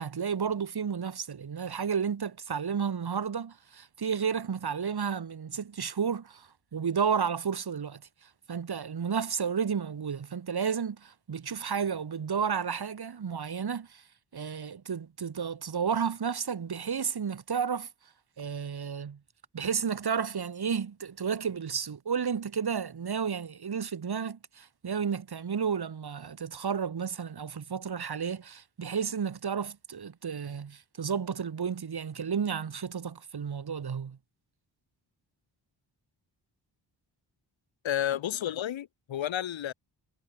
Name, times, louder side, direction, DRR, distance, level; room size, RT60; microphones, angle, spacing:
voice 1, 0.0-14.0 14.3-17.9 18.4-19.2 19.5-34.2, right 6 dB, 55° right, 2.7 m, -32 dB
voice 2, 37.8-39.7, left 11 dB, 90° left, 1.6 m, -31 dB
cardioid pair, 70°, 44 cm